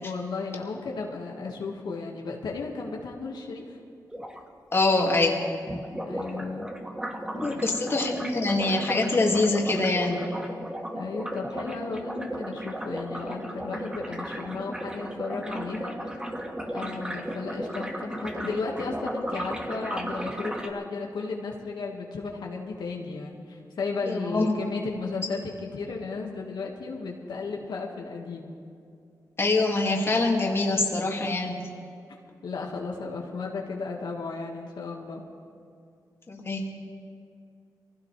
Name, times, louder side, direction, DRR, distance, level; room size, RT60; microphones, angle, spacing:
voice 1, 0.0-3.8 6.1-6.8 7.3-7.6 10.9-16.3 16.7-28.5 32.4-35.2, left 4 dB, 85° left, -1 dB, 1.7 m, -34 dB
sound 1, 4.1-4.4 5.7-20.7, equal, 10° right, 1.6 m, -35 dB
voice 2, 4.7-5.4 7.4-10.2 16.9-17.2 24.1-24.5 29.4-31.6 36.3-36.7, left 2 dB, 35° left, -1 dB, 2.3 m, -24 dB
23.0 x 16.0 x 3.3 m, 2.4 s
cardioid pair, 90°, 7 cm